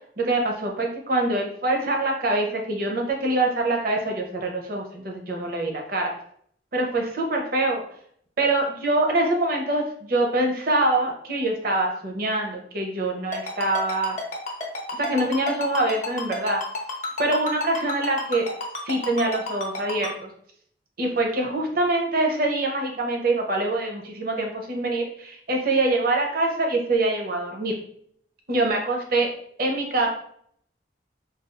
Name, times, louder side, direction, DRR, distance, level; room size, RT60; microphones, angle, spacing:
voice 1, 0.2-6.1 6.7-7.8 8.4-14.2 15.0-16.6 17.2-18.4 18.8-20.3 21.0-27.8 28.5-29.3 29.6-30.1, right 2 dB, 50° right, 1 dB, 0.7 m, -24 dB
Ringtone, 13.3-20.1, left 2 dB, 40° left, 0.7 m, -30 dB
4.1 x 2.3 x 2.5 m, 0.64 s
head